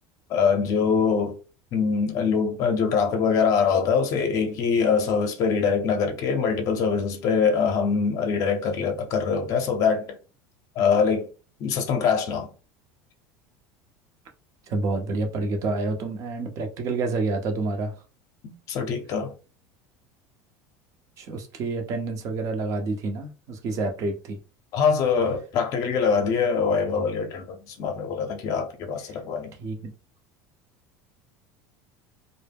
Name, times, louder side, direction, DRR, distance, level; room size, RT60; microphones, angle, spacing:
voice 1, 0.3-1.4 1.7-10.2 10.8-11.3 11.6-12.5 18.4-19.3 24.7-29.5, left 6 dB, 50° left, 0.5 m, -23 dB
voice 2, 14.7-17.9 21.2-24.4 29.6-29.8, right 3 dB, 45° right, 0.7 m, -28 dB
2.1 x 2.0 x 3.4 m
supercardioid pair, 120°, 7 cm